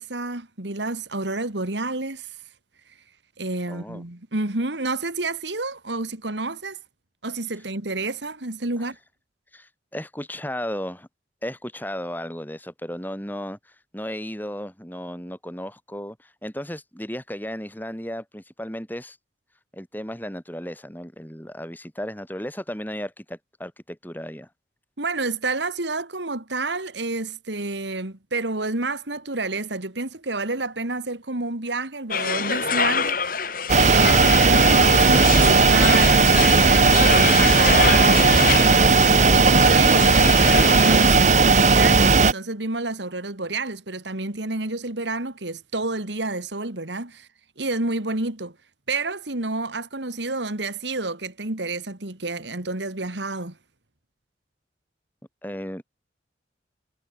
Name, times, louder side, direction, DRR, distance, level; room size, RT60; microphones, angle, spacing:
voice 1, 0.0-2.3 3.4-6.8 7.2-9.0 25.0-33.5 33.8-47.3 47.6-48.6 48.9-53.6, right 2 dB, 75° right, 2.6 m, -29 dB
voice 2, 3.7-4.0 9.5-11.1 11.4-19.2 19.7-24.5 55.4-55.8, equal, 10° left, 6.8 m, -34 dB
sound 1, 32.1-41.2, left 6 dB, 50° left, 7.7 m, -26 dB
sound 2, 33.7-42.3, right 4 dB, 40° right, 1.2 m, -16 dB
head